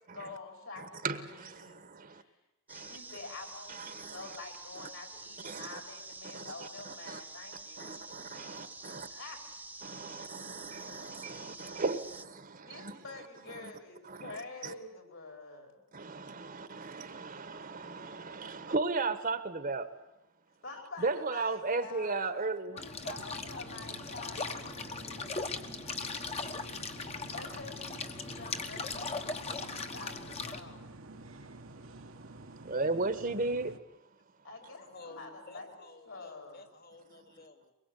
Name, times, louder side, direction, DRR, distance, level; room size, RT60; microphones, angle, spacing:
voice 1, 0.1-2.4 2.8-8.0 8.4-9.4 12.5-15.8 20.6-25.5 27.3-30.9 34.4-35.7 36.1-36.7, left 3 dB, 65° left, 4.9 m, -48 dB
voice 2, 0.8-2.2 2.7-3.0 3.7-4.4 4.8-4.9 5.4-5.8 6.3-7.2 7.8-9.1 9.8-13.0 13.6-13.7 14.0-14.4 14.6-14.7 15.9-19.9 21.0-22.8 26.0-26.4 31.1-33.7, right 3 dB, 40° right, 1.3 m, -36 dB
sound 1, 2.7-12.2, right 3 dB, 10° right, 0.9 m, -48 dB
sound 2, 22.8-30.6, left 4 dB, 30° left, 1.3 m, -39 dB
sound 3, 23.1-33.8, right 2 dB, 65° right, 1.3 m, -50 dB
voice 3, 34.6-37.7, left 3 dB, 50° left, 2.5 m, -53 dB
23.5 x 21.5 x 8.3 m
head